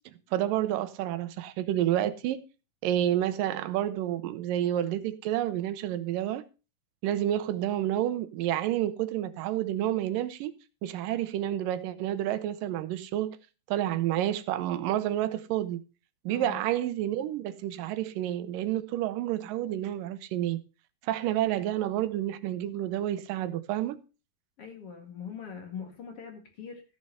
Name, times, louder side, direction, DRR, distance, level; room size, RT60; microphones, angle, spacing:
voice 1, 0.3-2.4 2.8-6.4 7.0-10.5 10.8-13.4 13.7-15.8 16.3-20.6 21.0-24.0, right 12 dB, 80° right, 2.4 m, -29 dB
voice 2, 16.3-16.6 24.6-26.8, left 7 dB, 45° left, 2.6 m, -42 dB
14.5 x 6.5 x 5.5 m
omnidirectional pair, 3.9 m